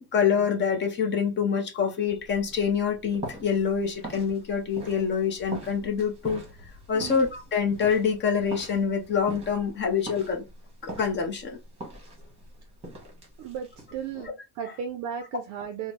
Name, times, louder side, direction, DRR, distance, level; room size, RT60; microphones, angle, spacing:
voice 1, 0.1-6.4 6.9-10.4 10.8-11.6, left 6 dB, 30° left, 0.6 m, -26 dB
sound 1, 2.0-14.3, right 2 dB, 15° right, 1.1 m, -43 dB
voice 2, 13.4-15.9, right 7 dB, 50° right, 0.5 m, -35 dB
3.7 x 2.1 x 3.1 m
cardioid pair, 175°, 40 cm